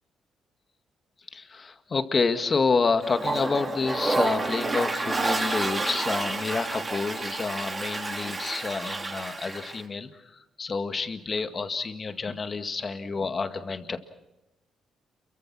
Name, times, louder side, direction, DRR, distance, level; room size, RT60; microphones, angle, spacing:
voice 1, 1.3-10.1 10.6-14.0, left 4 dB, 35° left, 8 dB, 2.0 m, -28 dB
Toilet flush, 3.0-9.8, right 3 dB, 25° right, 3.7 m, -29 dB
28.5 x 23.5 x 6.2 m, 0.94 s
cardioid pair, 90°, 0 cm